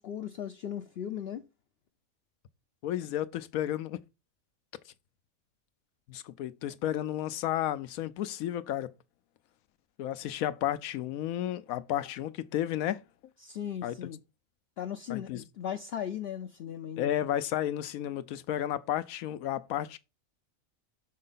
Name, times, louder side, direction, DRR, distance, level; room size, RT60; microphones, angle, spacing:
voice 1, 0.0-1.4 13.4-14.2 14.8-17.1, left 9 dB, 60° left, 0.6 m, -37 dB
voice 2, 2.8-4.0 6.1-8.9 10.0-13.0 13.8-14.0 15.1-15.4 17.0-20.0, left 12 dB, 85° left, 1.1 m, -32 dB
6.4 x 5.3 x 3.9 m
omnidirectional pair, 1.5 m